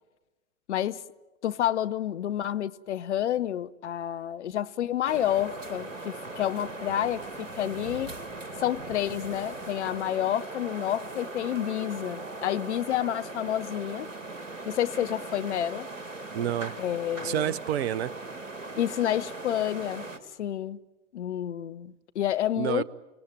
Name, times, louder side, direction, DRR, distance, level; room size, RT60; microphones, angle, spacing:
voice 1, 0.7-1.0 1.4-8.1 8.6-14.1 14.7-15.9 16.8-17.4 18.8-20.1 20.4-20.8 21.1-22.8, left 11 dB, 65° left, 1.0 m, -29 dB
sound 1, 5.1-20.2, right 2 dB, 80° right, 1.9 m, -39 dB
voice 2, 16.3-16.7 17.2-18.1 22.6-22.8, right 11 dB, 55° right, 1.0 m, -28 dB
30.0 x 17.5 x 9.2 m
figure-of-eight pair, 90°, 38 cm